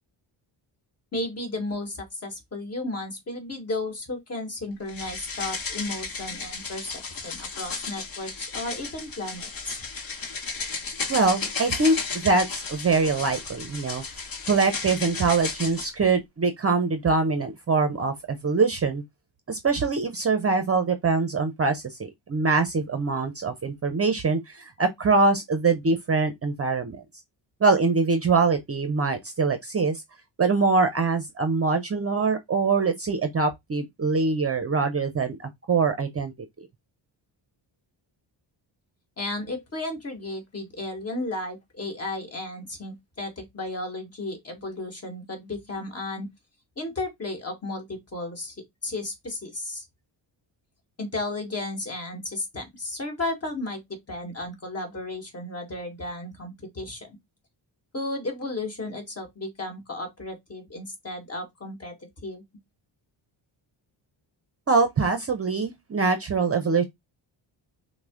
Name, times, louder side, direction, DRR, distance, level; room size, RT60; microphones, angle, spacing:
voice 1, 1.1-9.8 39.2-46.3 46.8-48.6 48.8-49.8 51.0-57.2 57.9-62.4, left 2 dB, 30° left, 1.5 m, -34 dB
sound 1, 4.9-15.9, left 4 dB, 45° left, 1.1 m, -34 dB
voice 2, 11.1-12.0 12.2-14.0 14.5-19.0 19.5-27.0 27.6-30.0 30.4-35.4 35.7-36.3 64.7-66.8, right 4 dB, 30° right, 0.6 m, -23 dB
5.9 x 2.1 x 3.5 m
wide cardioid pair, 130°, 46 cm